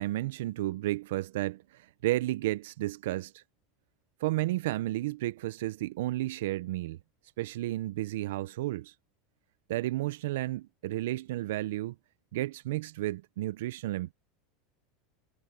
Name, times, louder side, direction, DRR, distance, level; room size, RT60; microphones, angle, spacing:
voice 1, 0.0-3.4 4.2-7.0 7.4-8.9 9.7-11.9 12.3-14.1, right 16 dB, 80° right, 0.4 m, -32 dB
supercardioid pair, 170°, 0 cm